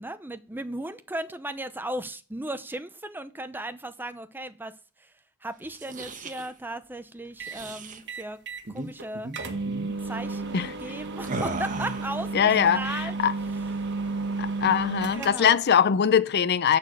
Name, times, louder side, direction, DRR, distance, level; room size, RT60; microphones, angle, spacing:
voice 1, 0.0-5.1 5.4-8.4 8.7-9.3 10.0-13.1 13.8-13.9 15.2-15.6, right 1 dB, 10° right, 0.6 m, -36 dB
sound 1, 5.6-6.5 7.4-8.0 8.6-8.9 9.1-9.4 9.7-9.9 11.2-12.2, right 2 dB, 35° right, 1.2 m, -36 dB
sound 2, 7.4-7.6 8.1-8.7 9.0-9.1 9.3-15.6, right 3 dB, 55° right, 1.4 m, -33 dB
voice 2, 12.3-13.3 14.4-16.8, left 8 dB, 50° left, 0.5 m, -22 dB
11.0 x 4.2 x 7.8 m
head